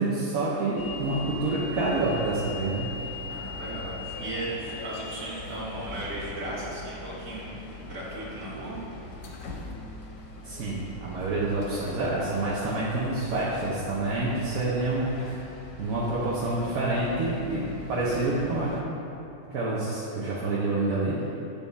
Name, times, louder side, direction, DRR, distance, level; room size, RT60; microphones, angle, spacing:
voice 1, 0.0-3.0 10.4-15.5 15.8-18.7 19.4-21.2, right 2 dB, 70° right, -8 dB, 1.3 m, -28 dB
sound 1, 0.8-18.8, left 3 dB, 85° left, 1.3 m, -40 dB
voice 2, 3.3-8.8, right 1 dB, 55° right, -7 dB, 1.8 m, -36 dB
8.8 x 3.5 x 4.0 m, 3.0 s
omnidirectional pair, 1.6 m